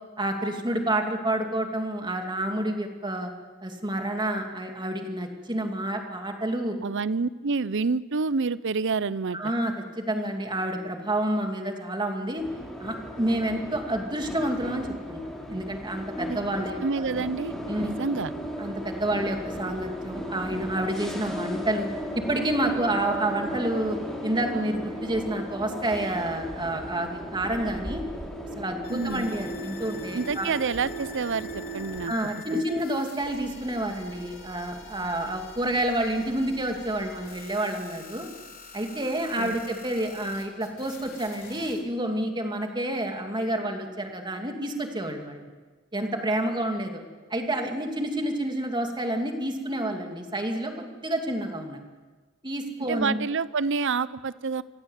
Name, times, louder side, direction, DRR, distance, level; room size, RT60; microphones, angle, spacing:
voice 1, 0.2-3.3 3.6-6.8 9.3-12.4 12.8-15.2 15.5-17.0 17.7-17.9 18.6-21.9 22.1-24.0 24.2-28.0 28.6-30.5 32.1-38.3 38.7-45.5 45.9-47.0 47.3-51.8 52.4-53.2, right 1 dB, 20° right, 4 dB, 2.6 m, -29 dB
voice 2, 6.8-9.4 16.3-16.4 16.8-18.3 28.9-29.3 30.1-32.1 32.5-32.6 39.4-39.6 52.9-54.6, right 4 dB, 60° right, 17 dB, 0.7 m, -28 dB
sound 1, 12.4-32.1, equal, ahead, 4.3 m, -36 dB
sound 2, 28.8-41.8, left 5 dB, 45° left, 4.5 m, -46 dB
25.5 x 16.5 x 8.2 m, 1.3 s
head